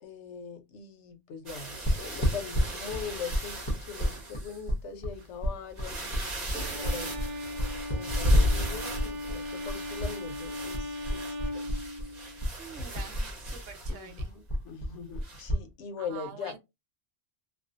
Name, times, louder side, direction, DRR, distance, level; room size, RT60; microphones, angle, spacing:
voice 1, 0.0-7.3 7.9-11.6 13.9-16.5, left 6 dB, 70° left, 0.9 m, -41 dB
sound 1, 1.5-4.7 5.2-5.3 5.7-14.2 15.2-15.5, equal, 40° right, 0.9 m, -34 dB
sound 2, 1.8-10.1 10.4-12.1 12.4-15.6, equal, 30° left, 0.5 m, -31 dB
Bowed string instrument, 6.5-12.4, left 1 dB, 60° right, 0.5 m, -38 dB
voice 2, 12.6-14.3 16.0-16.6, right 8 dB, 85° right, 1.0 m, -46 dB
2.5 x 2.3 x 2.4 m
omnidirectional pair, 1.3 m